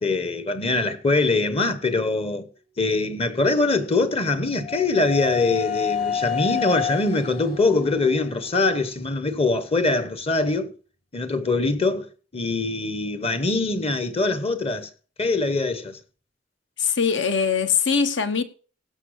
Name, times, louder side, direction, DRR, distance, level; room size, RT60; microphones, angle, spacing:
voice 1, 0.0-2.5 2.8-10.7 11.1-14.9 15.2-16.0, left 3 dB, 35° left, 0.9 m, -23 dB
sound 1, 3.9-9.6, left 8 dB, 55° left, 5.4 m, -30 dB
voice 2, 16.8-18.4, left 6 dB, 70° left, 1.1 m, -22 dB
16.5 x 5.6 x 6.4 m
head